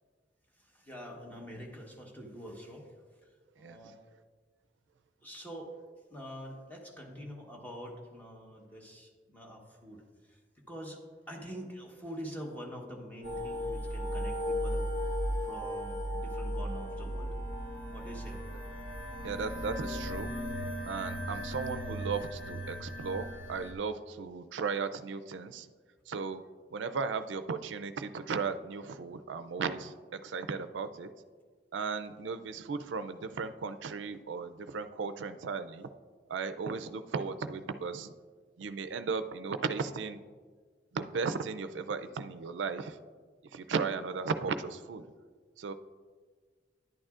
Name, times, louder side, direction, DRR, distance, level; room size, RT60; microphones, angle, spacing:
voice 1, 0.6-2.9 3.2-4.0 5.2-5.7 6.1-11.0 11.3-14.8 15.1-17.3 17.9-18.4, equal, 10° left, -1 dB, 1.2 m, -45 dB
sound 1, 13.2-23.7, equal, 75° left, 1.3 m, -36 dB
voice 2, 19.2-20.3 20.9-25.7 26.1-26.4 26.7-29.9 30.2-31.1 31.7-35.9 36.3-38.1 38.6-40.2 40.9-43.0 43.5-45.0 45.6-45.7, right 5 dB, 90° right, 10 dB, 0.4 m, -36 dB
10.5 x 8.9 x 2.4 m, 1.5 s
head